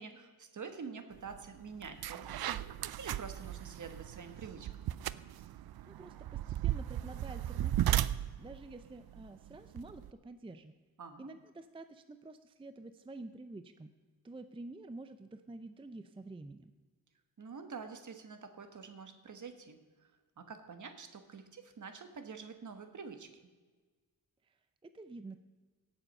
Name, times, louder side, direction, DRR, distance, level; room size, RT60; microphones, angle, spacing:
voice 1, 0.0-2.6 3.0-4.9 11.0-11.4 17.4-19.8 20.4-23.3, right 5 dB, 50° right, 8 dB, 1.3 m, -47 dB
sound 1, 1.3-1.4 1.8-10.1, right 12 dB, 70° right, 0.5 m, -36 dB
voice 2, 5.9-8.1 8.4-10.7 11.2-13.9 14.2-16.7 24.4-25.4, right 2 dB, 15° right, 10 dB, 0.5 m, -49 dB
17.5 x 7.2 x 5.4 m, 1.4 s
wide cardioid pair, 130°, 38 cm